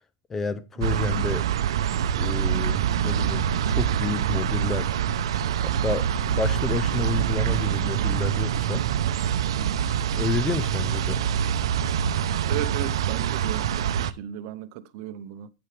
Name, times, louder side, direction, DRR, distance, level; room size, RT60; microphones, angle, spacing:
voice 1, 0.3-1.5 2.2-4.9 5.6-8.9 10.2-11.3, left 4 dB, 10° left, 0.4 m, -30 dB
sound 1, 0.8-14.1, right 9 dB, 70° right, 0.8 m, -25 dB
voice 2, 12.4-15.5, right 12 dB, 35° right, 0.8 m, -35 dB
12.5 x 8.7 x 3.3 m
supercardioid pair, 180°, 3 cm